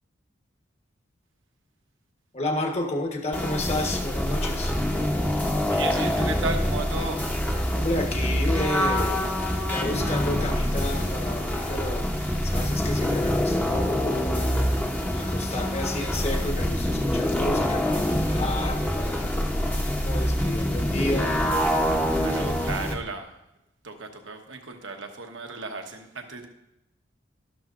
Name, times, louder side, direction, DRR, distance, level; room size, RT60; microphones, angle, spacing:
voice 1, 2.3-4.7 7.7-9.2 9.6-12.1 12.4-14.4 15.2-19.3 19.9-21.4 22.2-22.7, left 1 dB, 35° left, 3 dB, 1.2 m, -31 dB
sound 1, 3.3-22.9, equal, 10° left, 0.8 m, -25 dB
voice 2, 5.7-7.2 22.2-23.4 23.8-26.5, right 3 dB, 75° right, 4 dB, 1.1 m, -35 dB
sound 2, 6.7-23.0, equal, 70° left, 3.5 m, -43 dB
12.0 x 12.0 x 2.5 m, 0.88 s
head